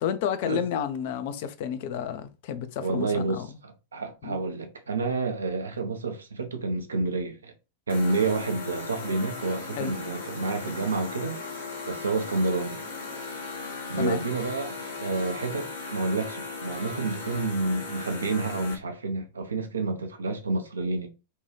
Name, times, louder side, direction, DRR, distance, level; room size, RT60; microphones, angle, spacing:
voice 1, 0.0-3.5 4.2-4.4 9.8-9.9 14.0-14.2, left 8 dB, 50° left, 0.4 m, -31 dB
voice 2, 2.8-7.5 7.9-12.8 13.9-21.1, right 3 dB, 75° right, 0.5 m, -29 dB
sound 1, 7.9-18.7, left 4 dB, 70° left, 0.8 m, -37 dB
2.7 x 2.2 x 3.0 m
figure-of-eight pair, 90°, 0 cm